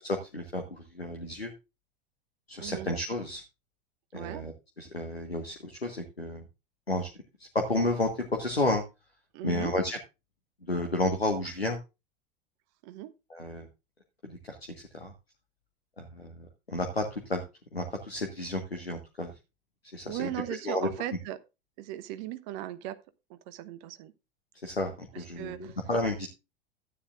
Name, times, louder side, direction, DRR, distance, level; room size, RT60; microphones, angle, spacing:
voice 1, 0.0-1.5 2.5-3.4 4.1-4.5 4.8-6.4 6.9-7.1 7.5-8.8 9.4-10.0 10.7-11.8 13.3-13.7 14.2-14.6 14.9-15.1 16.0-17.4 17.7-19.3 19.9-20.3 20.6-20.9 24.6-26.3, left 2 dB, 85° left, 1.4 m, -31 dB
voice 2, 2.6-2.9 4.1-4.4 9.3-9.7 12.8-13.1 20.0-21.4 21.8-23.0 23.3-24.1 25.1-25.8, right 13 dB, 45° right, 1.2 m, -38 dB
13.0 x 9.8 x 2.5 m
figure-of-eight pair, 80°, 30 cm